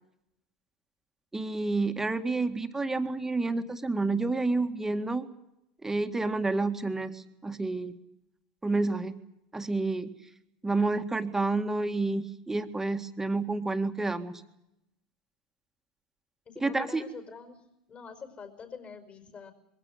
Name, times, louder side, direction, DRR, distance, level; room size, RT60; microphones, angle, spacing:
voice 1, 1.3-5.3 5.8-7.9 8.6-9.2 9.5-10.1 10.6-14.4 16.6-17.0, right 3 dB, 10° right, 7 dB, 2.0 m, -29 dB
voice 2, 16.5-17.6 17.9-19.5, left 5 dB, 35° left, 7 dB, 5.2 m, -45 dB
22.5 x 16.5 x 9.4 m, 0.84 s
hypercardioid pair, 90°, 4 cm